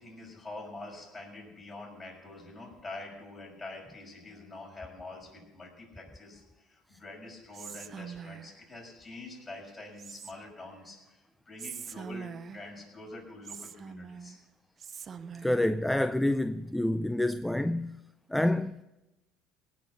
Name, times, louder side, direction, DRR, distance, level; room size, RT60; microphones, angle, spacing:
voice 1, 0.0-14.4, left 2 dB, 30° left, 6.6 m, -46 dB
Whispering, 7.5-8.6 10.0-10.7 11.6-12.8 13.5-14.4 14.8-15.7, right 6 dB, 40° right, 0.6 m, -43 dB
voice 2, 15.4-18.0 18.3-18.8, left 1 dB, 5° left, 0.4 m, -27 dB
18.5 x 6.4 x 8.5 m
supercardioid pair, 95°, 0 cm